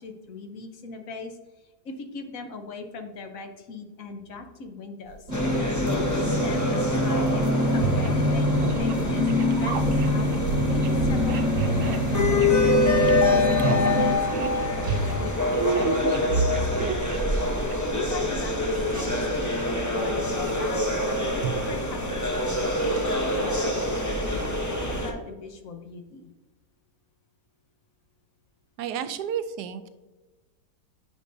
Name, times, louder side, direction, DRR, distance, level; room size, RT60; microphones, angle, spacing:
voice 1, 0.0-1.4 1.8-5.3 5.9-7.4 7.7-9.3 9.6-10.3 10.7-12.8 13.2-17.3 17.9-19.8 20.0-22.2 22.6-24.0 24.6-26.3, left 3 dB, 60° left, 5 dB, 1.2 m, -39 dB
sound 1, 5.1-5.5 7.0-7.1 7.4-17.9 18.3-19.7 20.1-22.1, right 4 dB, 60° right, 0.9 m, -30 dB
sound 2, 5.3-25.1, left 2 dB, 20° left, 0.6 m, -26 dB
sound 3, 5.3-14.1, left 1 dB, 25° right, 1.2 m, -25 dB
voice 2, 28.8-29.9, right 8 dB, 90° right, 11 dB, 1.2 m, -31 dB
9.8 x 5.3 x 2.7 m, 1.2 s
omnidirectional pair, 1.7 m